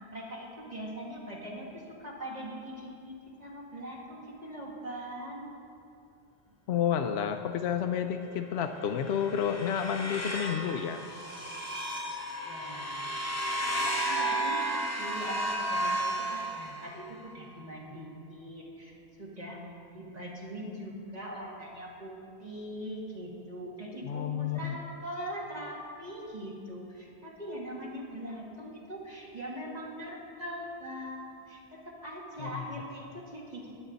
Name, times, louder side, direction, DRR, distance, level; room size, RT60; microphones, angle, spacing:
voice 1, 0.1-5.5 12.4-13.2 14.0-18.9 19.2-19.6 19.9-33.7, equal, 35° right, -5 dB, 2.4 m, -41 dB
voice 2, 6.7-11.0 24.0-24.8 32.4-32.5, left 8 dB, 75° left, 6 dB, 0.8 m, -30 dB
sound 1, 8.8-17.1, right 1 dB, 15° left, 1.1 m, -33 dB
21.5 x 8.3 x 4.0 m, 2.6 s
omnidirectional pair, 1.1 m